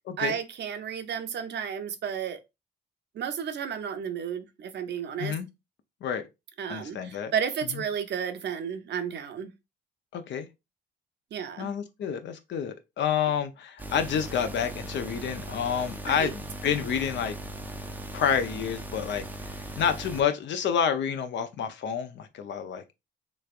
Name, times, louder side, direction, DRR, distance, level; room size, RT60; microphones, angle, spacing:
voice 1, 0.2-2.4 3.1-5.3 6.6-9.5 11.3-11.7 16.1-16.3, right 8 dB, 60° right, 0.6 m, -32 dB
voice 2, 6.7-7.3 7.7-7.8 10.1-10.5 11.6-17.4 18.1-22.9, left 7 dB, 65° left, 0.6 m, -29 dB
sound 1, 13.8-20.2, right 1 dB, 10° right, 0.5 m, -39 dB
3.3 x 3.1 x 2.4 m
cardioid pair, 90°, 20 cm